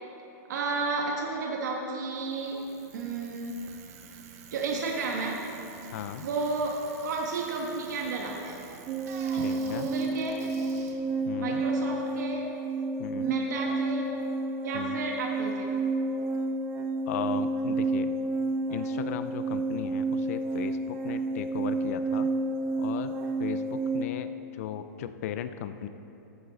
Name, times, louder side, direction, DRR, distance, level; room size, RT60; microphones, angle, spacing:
voice 1, 0.5-2.6 2.9-3.6 4.5-5.5 6.2-8.6 9.6-10.5 11.4-12.5 13.2-14.1 14.6-15.7, right 3 dB, 75° right, -1 dB, 1.6 m, -32 dB
Bicycle, 2.2-12.2, right 6 dB, 55° right, 1.2 m, -49 dB
voice 2, 5.9-6.3 9.3-9.9 11.3-11.6 13.0-13.3 14.7-15.0 17.1-18.1 18.7-22.3 22.8-25.9, left 10 dB, 55° left, 11 dB, 0.5 m, -37 dB
sound 1, 8.9-24.0, right 3 dB, 25° right, 0.6 m, -30 dB
14.5 x 9.0 x 4.1 m, 2.9 s
supercardioid pair, 165°, 10 cm